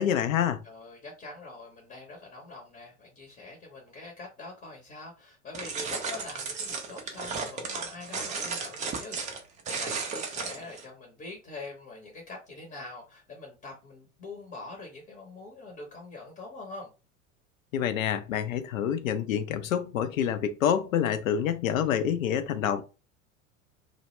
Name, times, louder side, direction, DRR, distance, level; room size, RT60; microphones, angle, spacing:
voice 1, 0.0-0.6 17.7-22.8, left 9 dB, 75° left, 0.5 m, -27 dB
voice 2, 0.6-16.9, left 3 dB, 20° left, 0.7 m, -44 dB
sound 1, 5.5-10.8, right 5 dB, 20° right, 0.3 m, -34 dB
2.1 x 2.0 x 3.0 m
figure-of-eight pair, 80°, 41 cm